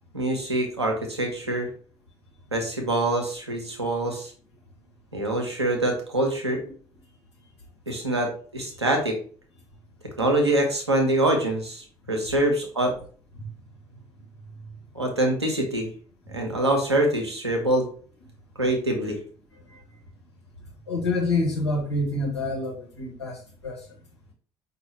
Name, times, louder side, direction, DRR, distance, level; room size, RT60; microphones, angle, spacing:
voice 1, 0.1-1.7 2.5-4.3 5.1-6.6 7.9-9.2 10.2-12.9 14.9-15.9 16.3-17.9 18.6-19.2, right 1 dB, 90° right, 2 dB, 0.7 m, -25 dB
voice 2, 20.9-23.9, left 2 dB, 85° left, -1 dB, 1.0 m, -27 dB
5.2 x 2.3 x 3.2 m, 0.43 s
figure-of-eight pair, 50°, 14 cm